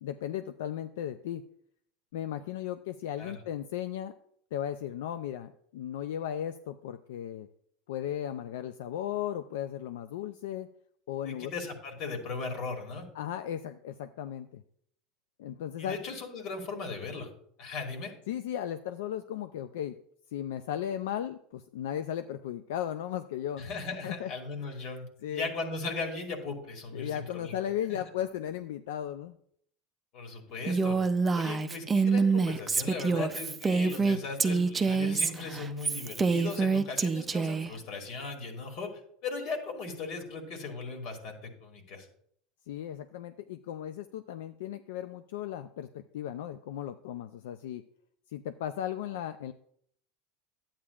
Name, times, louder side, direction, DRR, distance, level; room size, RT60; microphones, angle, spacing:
voice 1, 0.0-1.4 2.1-4.1 4.5-7.5 7.9-10.7 11.1-11.5 13.1-14.6 15.4-16.0 18.3-20.0 20.3-23.6 24.0-24.3 25.2-25.5 26.9-29.4 42.7-47.8 48.3-49.5, left 10 dB, 85° left, 10 dB, 0.3 m, -36 dB
voice 2, 11.2-13.1 15.8-17.3 17.6-18.1 23.6-27.6 27.9-28.0 30.1-31.0 31.3-38.9 39.2-42.1, left 4 dB, 55° left, 4 dB, 2.1 m, -38 dB
Female speech woman speaking, 30.7-37.7, right 4 dB, 20° right, 0.5 m, -26 dB
11.0 x 8.6 x 2.4 m, 0.66 s
supercardioid pair, 120°, 0 cm